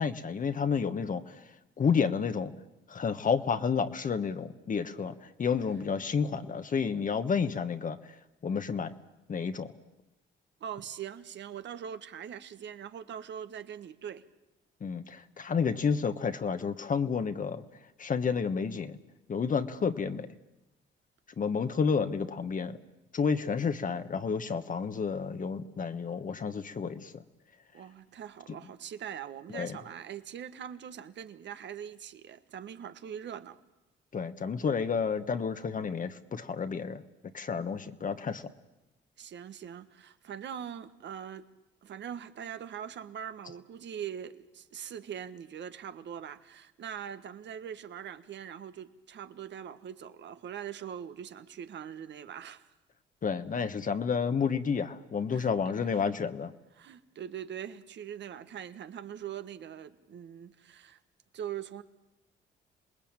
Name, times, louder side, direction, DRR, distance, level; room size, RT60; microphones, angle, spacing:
voice 1, 0.0-1.4 1.8-2.5 2.9-5.1 5.4-8.0 8.4-8.9 9.3-9.7 14.8-17.6 18.0-19.0 19.3-20.3 21.4-22.8 23.1-27.1 29.5-29.8 34.1-37.0 37.3-38.4 53.2-56.5, left 6 dB, 40° left, 1.3 m, -30 dB
voice 2, 10.6-14.2 27.7-33.6 39.2-41.4 41.8-52.7 55.3-55.5 55.8-56.1 56.7-61.0 61.3-61.8, right 9 dB, 65° right, 1.4 m, -42 dB
27.5 x 20.0 x 8.9 m
cardioid pair, 90°, 20 cm